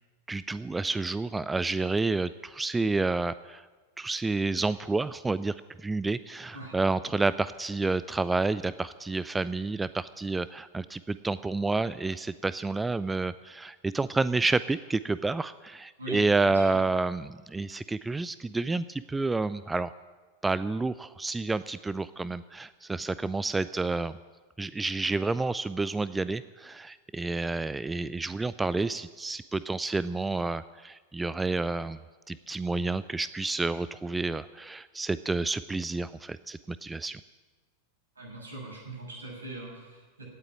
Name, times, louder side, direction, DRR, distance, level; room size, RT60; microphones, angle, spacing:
voice 1, 0.3-3.7 4.0-19.9 20.4-24.1 24.6-32.0 32.3-37.2, right 3 dB, 10° right, 16 dB, 0.4 m, -29 dB
voice 2, 16.0-16.8 38.1-40.2, right 2 dB, 75° right, -1 dB, 6.7 m, -41 dB
17.5 x 7.9 x 9.6 m, 1.3 s
figure-of-eight pair, 90°, 0 cm